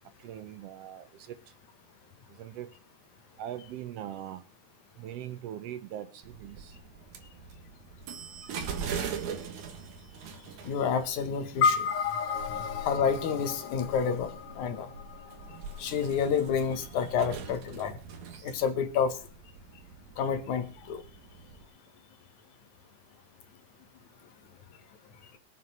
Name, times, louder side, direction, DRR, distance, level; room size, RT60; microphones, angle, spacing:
voice 1, 0.2-1.4 2.4-2.7 3.4-4.4 5.0-6.7, right 11 dB, 70° right, 1.6 m, -41 dB
sound 1, 6.2-21.6, right 6 dB, 90° right, 3.0 m, -42 dB
voice 2, 10.6-11.9 12.3-14.9 15.8-17.9 18.4-19.2 20.2-21.0, left 7 dB, 85° left, 2.8 m, -29 dB
sound 2, 11.6-16.2, left 6 dB, 60° left, 1.8 m, -32 dB
23.0 x 8.0 x 4.1 m
omnidirectional pair, 3.3 m